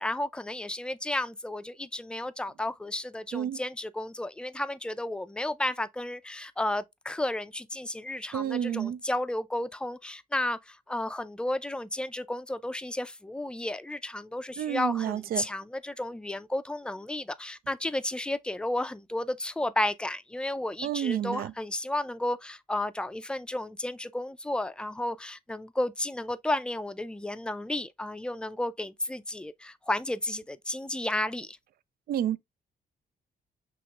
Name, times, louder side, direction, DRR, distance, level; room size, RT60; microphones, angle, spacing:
voice 1, 0.0-31.6, left 1 dB, 5° left, 0.4 m, -32 dB
voice 2, 8.3-9.0 14.6-15.5 20.8-21.5 32.1-32.4, right 10 dB, 70° right, 0.4 m, -30 dB
5.9 x 3.0 x 2.4 m
cardioid pair, 115°, 16 cm